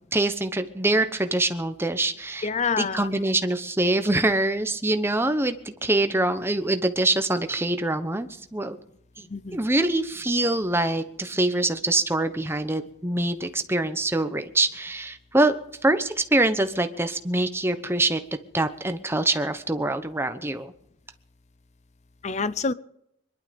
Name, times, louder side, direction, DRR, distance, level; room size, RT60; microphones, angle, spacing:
voice 1, 0.1-2.5 2.8-8.8 9.2-9.3 9.5-15.5 15.8-18.2 18.5-20.7, right 2 dB, 10° right, 0.9 m, -24 dB
voice 2, 2.4-3.1 9.3-9.7 22.2-22.7, left 5 dB, 35° left, 0.5 m, -27 dB
22.5 x 11.5 x 5.2 m
head